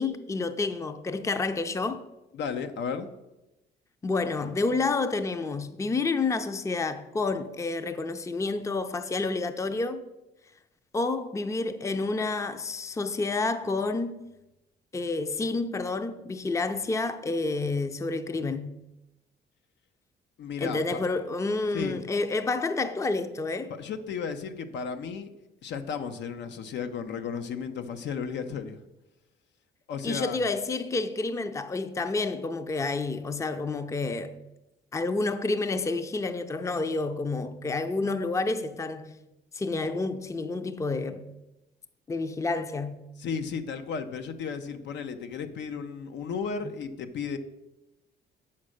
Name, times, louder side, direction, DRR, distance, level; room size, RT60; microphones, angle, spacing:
voice 1, 0.0-2.0 4.0-10.0 10.9-14.3 14.9-18.8 20.6-23.7 30.0-34.4 34.9-39.2 39.5-41.2 42.1-43.0, left 3 dB, 15° left, 0.5 m, -29 dB
voice 2, 2.3-3.1 20.4-21.0 21.7-22.0 23.7-25.3 25.6-28.8 29.9-30.4 43.2-47.4, left 6 dB, 80° left, 0.8 m, -34 dB
7.4 x 5.8 x 6.4 m
cardioid pair, 120°, 18 cm